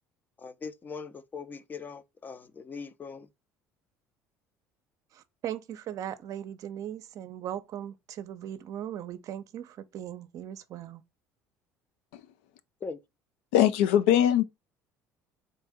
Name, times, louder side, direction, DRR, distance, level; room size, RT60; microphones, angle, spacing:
voice 1, 0.4-3.3 12.8-13.0, left 5 dB, 30° left, 0.5 m, -41 dB
voice 2, 5.1-11.0, right 10 dB, 55° right, 0.6 m, -38 dB
voice 3, 13.5-14.4, left 11 dB, 85° left, 0.4 m, -21 dB
3.9 x 2.6 x 3.5 m
supercardioid pair, 85°, 7 cm